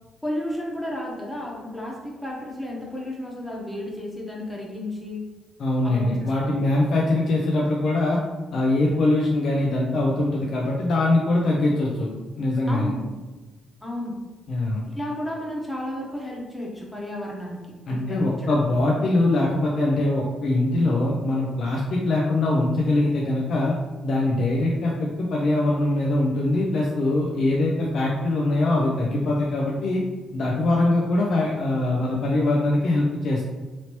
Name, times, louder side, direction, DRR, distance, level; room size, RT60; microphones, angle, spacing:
voice 1, 0.2-5.2 5.8-6.6 12.7-13.1 13.8-14.2 14.9-17.6 17.9-18.6, left 1 dB, 5° left, -3 dB, 0.9 m, -33 dB
voice 2, 5.6-8.2 8.5-12.1 12.4-12.9 14.5-14.8 17.9-23.7 24.0-30.0 30.3-33.4, left 2 dB, 60° left, -3 dB, 0.5 m, -22 dB
3.0 x 2.8 x 2.9 m, 1.2 s
cardioid pair, 90°, 0 cm